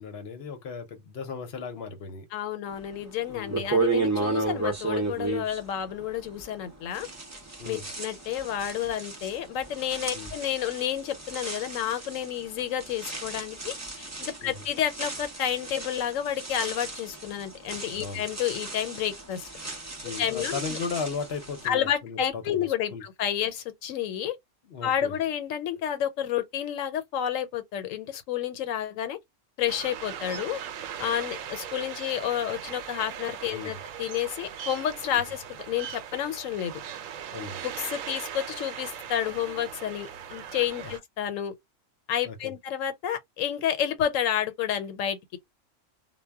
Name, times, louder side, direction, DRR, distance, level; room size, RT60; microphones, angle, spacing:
voice 1, 0.0-2.3 3.3-3.7 7.6-7.8 10.1-10.3 14.4-14.5 18.0-18.2 20.0-23.0 24.6-25.2 33.5-33.8 37.3-37.6 40.7-41.0 42.2-42.5, left 5 dB, 60° left, 0.8 m, -36 dB
voice 2, 2.3-7.1 7.6-19.5 20.2-20.8 21.6-24.4 24.8-29.2 29.6-30.6 31.0-36.7 37.6-41.5 42.1-45.4, left 10 dB, 90° left, 1.0 m, -30 dB
sound 1, 3.0-3.1 3.5-6.6 6.9-21.7, right 3 dB, 25° right, 0.4 m, -34 dB
sound 2, 29.7-41.0, right 8 dB, 85° right, 1.0 m, -39 dB
2.2 x 2.1 x 3.3 m
omnidirectional pair, 1.3 m